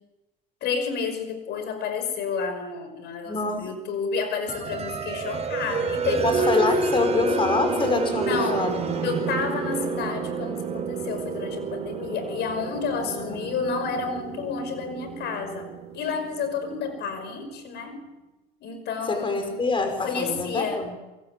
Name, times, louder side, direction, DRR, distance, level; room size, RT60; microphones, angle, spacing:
voice 1, 0.6-6.7 8.2-8.7 9.0-18.1 18.6-19.6 20.0-20.8, left 5 dB, 60° left, 8 dB, 5.6 m, -30 dB
voice 2, 3.2-3.7 6.2-9.1 13.0-13.5 19.1-20.9, left 3 dB, 25° left, 6 dB, 5.8 m, -26 dB
sound 1, 4.5-17.0, right 4 dB, 35° right, 4.5 m, -29 dB
25.0 x 23.0 x 8.7 m, 1.0 s
supercardioid pair, 90°, 19 cm